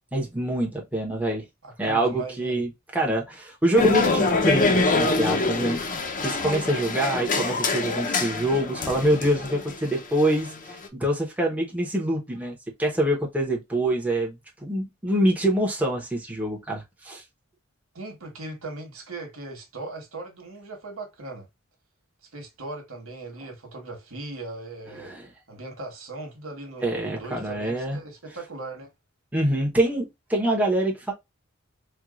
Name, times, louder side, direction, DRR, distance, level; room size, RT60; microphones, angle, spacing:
voice 1, 0.1-1.4 1.8-5.8 6.2-17.2 25.0-25.3 26.8-28.0 29.3-31.1, right 1 dB, 5° right, 1.0 m, -25 dB
voice 2, 1.6-2.6 17.9-21.5 22.3-25.1 25.5-28.9, right 2 dB, 90° right, 1.5 m, -38 dB
sound 1, 3.7-10.9, left 3 dB, 40° left, 0.6 m, -25 dB
4.5 x 2.4 x 2.4 m
head